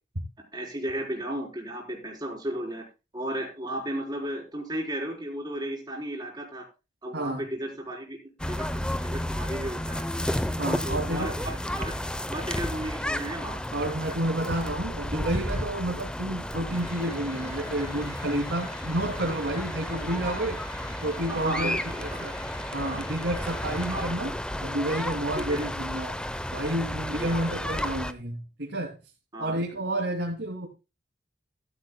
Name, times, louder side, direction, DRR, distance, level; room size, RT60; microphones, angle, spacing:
voice 1, 0.5-2.8 3.1-6.6 7.0-8.2 8.5-8.7 9.0-10.0 10.8-11.9 12.3-13.6 19.9-20.0 21.3-22.3 22.8-23.0 23.9-24.1 25.3-25.6 27.2-27.3 29.3-29.6, right 1 dB, 25° right, 4.1 m, -34 dB
sound 1, 8.4-28.1, left 1 dB, 5° left, 0.7 m, -32 dB
voice 2, 10.6-11.3 13.7-20.6 21.0-22.3 22.7-24.3 24.6-26.1 26.5-29.0 29.4-30.7, right 1 dB, 80° right, 2.8 m, -30 dB
sound 2, 16.7-24.0, left 1 dB, 25° left, 4.8 m, -45 dB
14.5 x 12.0 x 2.3 m
head